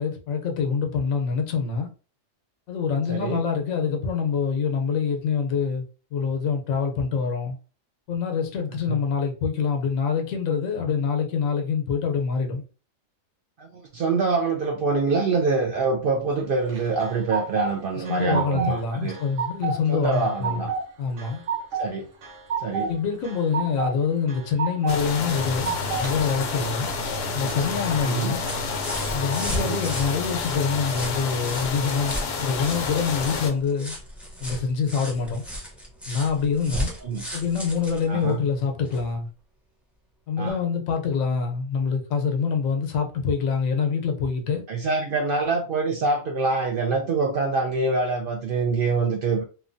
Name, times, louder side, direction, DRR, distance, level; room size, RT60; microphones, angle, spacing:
voice 1, 0.0-1.9 2.7-5.8 6.1-7.6 8.1-12.6 17.9-20.7 21.0-21.4 22.9-25.7 26.0-26.9 27.3-28.4 29.1-32.1 32.4-33.9 34.4-35.4 36.1-36.9 37.3-39.3 40.3-44.6, left 6 dB, 85° left, 1.1 m, -25 dB
voice 2, 3.1-3.5 8.9-9.0 13.6-19.2 19.9-20.7 21.8-22.1 22.6-22.9 28.0-28.3 29.6-29.8 37.0-37.2 38.1-38.4 40.4-40.6 44.7-49.5, right 3 dB, 60° right, 0.6 m, -25 dB
sound 1, 16.7-17.7 18.1-18.8 19.1-19.8 20.1-20.8 21.2-21.9 22.2-22.9 23.2-23.9 24.3-25.0 25.4-26.1, right 6 dB, 80° right, 1.2 m, -29 dB
sound 2, 24.9-33.5, left 4 dB, 60° left, 0.7 m, -29 dB
sound 3, 27.5-39.1 40.4-40.5, equal, ahead, 0.5 m, -36 dB
3.0 x 2.2 x 2.5 m
omnidirectional pair, 1.4 m